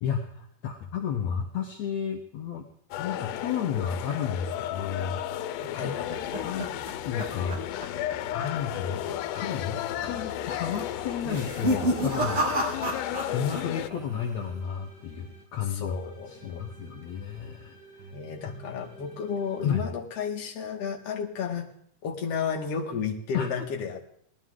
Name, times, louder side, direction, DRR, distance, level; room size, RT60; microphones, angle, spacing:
voice 1, 0.0-2.7 3.0-6.0 6.4-6.7 7.0-7.6 8.3-9.1 9.3-13.0 13.3-16.0 16.3-17.8 18.4-18.5 19.6-19.9 23.3-23.6, left 7 dB, 70° left, 2 dB, 1.7 m, -32 dB
sound 1, 2.9-13.9, left 12 dB, 85° left, 2.8 m, -34 dB
sound 2, 5.6-8.1 8.4-8.8 9.1-9.2 9.9-10.3 11.2-13.6 13.9-14.5, right 1 dB, 40° right, 3.2 m, -30 dB
voice 2, 5.7-6.3 15.7-16.6 18.1-21.7 22.0-24.2, left 6 dB, 50° left, 1 dB, 2.1 m, -33 dB
sound 3, 6.0-9.4 9.9-15.4 15.9-19.7, right 1 dB, 65° right, 6.2 m, -49 dB
19.0 x 13.5 x 3.8 m, 0.66 s
omnidirectional pair, 4.7 m